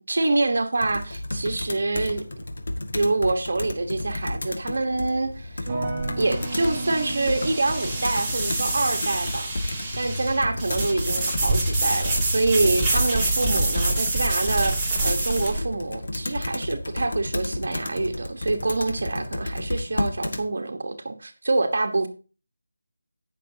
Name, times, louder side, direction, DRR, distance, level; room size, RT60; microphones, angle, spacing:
voice 1, 0.1-2.3 2.9-5.7 6.2-9.5 9.9-22.1, right 2 dB, 60° right, 1.3 m, -26 dB
Computer keyboard, 0.8-20.5, left 1 dB, 65° left, 2.0 m, -32 dB
sound 1, 5.2-15.6, right 2 dB, 10° right, 2.3 m, -27 dB
sound 2, 5.7-16.7 17.0-17.7, right 3 dB, 25° right, 4.4 m, -39 dB
18.0 x 6.5 x 2.9 m
figure-of-eight pair, 170°, 0 cm